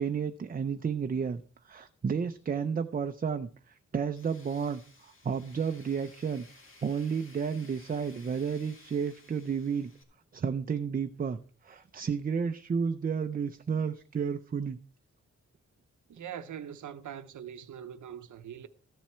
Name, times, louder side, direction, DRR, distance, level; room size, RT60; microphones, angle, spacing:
voice 1, 0.0-6.5 6.8-9.9 10.3-14.8, right 6 dB, 30° right, 0.4 m, -32 dB
Tools, 4.2-10.0, left 3 dB, 45° left, 2.0 m, -57 dB
voice 2, 16.1-18.7, right 9 dB, 85° right, 0.7 m, -42 dB
13.5 x 7.3 x 4.3 m
wide cardioid pair, 150°, 29 cm